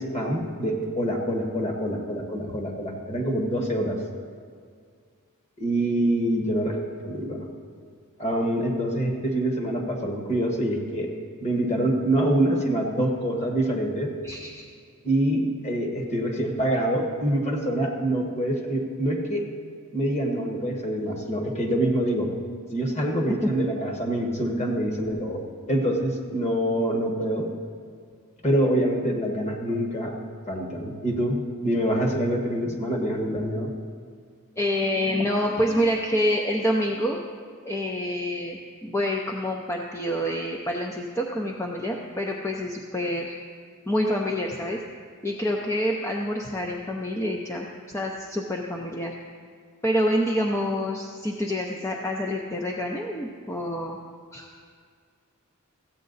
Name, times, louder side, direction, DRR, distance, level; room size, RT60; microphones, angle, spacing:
voice 1, 0.0-4.0 5.6-6.8 7.0-7.4 8.2-11.1 11.4-14.1 15.0-19.5 19.9-22.3 22.7-25.4 25.7-27.5 28.4-30.1 30.5-33.7, right 1 dB, 30° left, 1 dB, 1.4 m, -25 dB
voice 2, 14.2-14.6 23.4-23.5 34.6-37.2 37.6-43.3 43.9-44.8 45.2-47.7 47.9-49.1 49.8-54.0 54.3-54.5, equal, 15° left, 0 dB, 0.6 m, -27 dB
14.5 x 8.5 x 4.0 m, 2.1 s
head